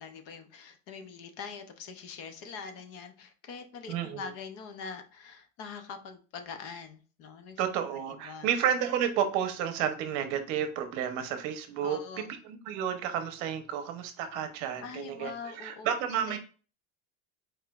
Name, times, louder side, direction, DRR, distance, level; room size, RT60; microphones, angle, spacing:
voice 1, 0.0-7.6 8.1-8.5 11.8-12.3 14.8-16.4, left 5 dB, 40° left, 8 dB, 0.6 m, -43 dB
voice 2, 3.9-4.3 7.6-12.0 12.4-16.4, right 9 dB, 50° right, 8 dB, 0.9 m, -31 dB
4.8 x 4.6 x 2.4 m, 0.36 s
cardioid pair, 175°, 38 cm